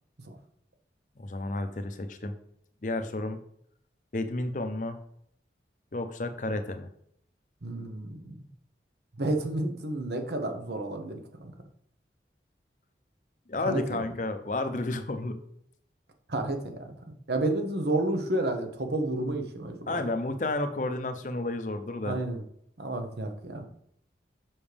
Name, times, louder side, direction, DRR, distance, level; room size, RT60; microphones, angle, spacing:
voice 1, 1.2-2.3 2.8-3.4 4.1-5.0 5.9-6.9 13.5-15.4 19.9-22.2, left 2 dB, 45° left, 8 dB, 0.7 m, -31 dB
voice 2, 7.6-8.5 9.2-11.5 13.6-14.0 16.3-20.1 22.0-22.4 22.8-23.6, right 2 dB, 70° right, 5 dB, 1.0 m, -31 dB
7.1 x 6.1 x 3.4 m, 0.69 s
head